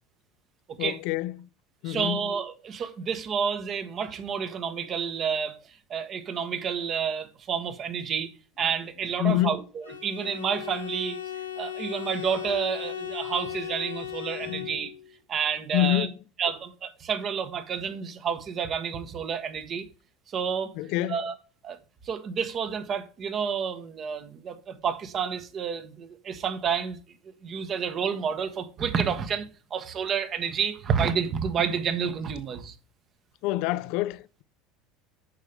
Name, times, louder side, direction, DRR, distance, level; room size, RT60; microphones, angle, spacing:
voice 1, 0.8-1.5 1.8-2.3 9.2-9.6 14.4-14.7 15.7-16.1 20.8-21.2 33.4-34.4, left 15 dB, 60° left, 0.5 m, -27 dB
voice 2, 1.8-8.3 8.6-11.2 11.6-14.9 15.3-16.1 16.4-19.9 20.3-20.7 21.1-21.3 21.6-21.8 22.0-27.0 27.4-32.7, right 7 dB, 40° right, 1.4 m, -30 dB
Bowed string instrument, 9.8-15.1, left 11 dB, 85° left, 0.9 m, -36 dB
9.2 x 6.7 x 3.5 m
hypercardioid pair, 75°, 0 cm